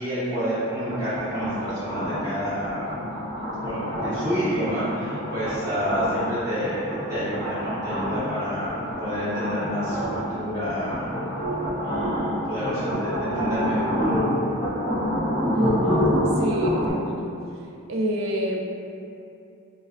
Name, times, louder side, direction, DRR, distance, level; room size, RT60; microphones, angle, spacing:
voice 1, 0.0-2.9 3.6-11.1 11.8-14.3, equal, 20° right, -15 dB, 1.1 m, -29 dB
sound 1, 0.8-16.9, equal, 20° left, 0.5 m, -28 dB
voice 2, 15.5-17.3 17.9-18.7, equal, 65° right, -1 dB, 0.3 m, -27 dB
2.4 x 2.4 x 2.4 m, 2.6 s
head